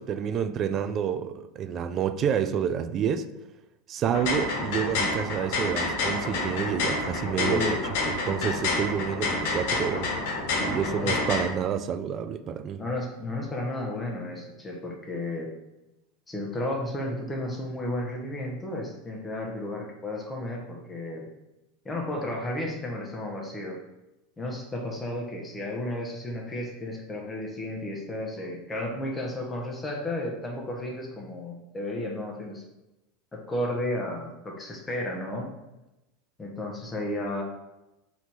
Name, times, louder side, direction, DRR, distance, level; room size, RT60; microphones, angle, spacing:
voice 1, 0.0-3.3 3.9-10.1 10.6-12.8, right 8 dB, 35° right, 0.3 m, -29 dB
sound 1, 4.0-11.4, left 3 dB, 65° left, 1.2 m, -28 dB
voice 2, 7.4-7.8 10.6-11.5 12.8-15.5 16.3-21.3 21.8-23.8 24.4-32.6 33.3-35.5 36.4-37.4, left 1 dB, 15° left, 0.9 m, -33 dB
4.0 x 2.7 x 4.6 m
supercardioid pair, 125°, 0 cm